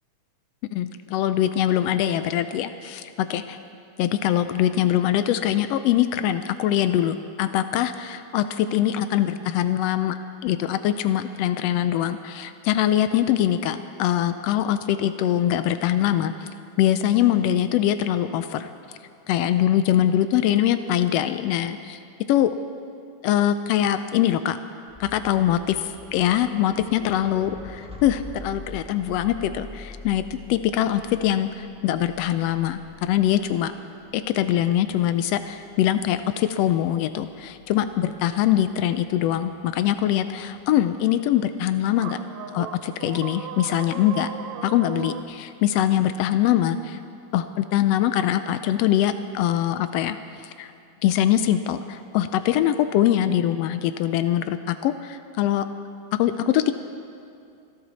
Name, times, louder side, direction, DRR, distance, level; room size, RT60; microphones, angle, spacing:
voice 1, 0.7-3.1 3.3-3.4 4.0-10.2 10.4-16.5 16.8-18.7 19.3-22.0 22.3-22.5 23.2-24.6 25.0-30.2 30.5-33.7 34.1-42.2 42.5-44.3 44.6-47.0 47.3-50.7 51.0-55.7 56.2-56.7, left 11 dB, 85° left, 11 dB, 1.4 m, -23 dB
sound 1, 24.9-40.8, left 1 dB, 5° right, 0.8 m, -46 dB
sound 2, 42.0-45.2, right 9 dB, 75° right, 1.9 m, -37 dB
28.0 x 12.0 x 4.2 m, 2.5 s
omnidirectional pair, 3.4 m